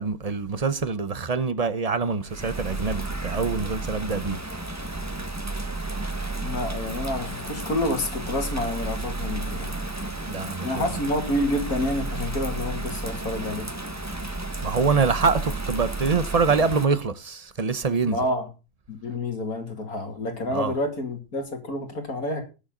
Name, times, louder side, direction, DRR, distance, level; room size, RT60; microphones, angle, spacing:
voice 1, 0.0-4.4 10.3-10.9 14.6-18.2 20.5-20.7, right 5 dB, 30° right, 0.8 m, -25 dB
Bird vocalization bird call bird song / Rain, 2.2-16.8, right 2 dB, 10° right, 1.3 m, -32 dB
voice 2, 6.4-9.8 10.6-13.7 18.0-18.5 18.9-22.4, left 1 dB, 65° left, 3.0 m, -28 dB
19.5 x 7.2 x 3.8 m
omnidirectional pair, 1.7 m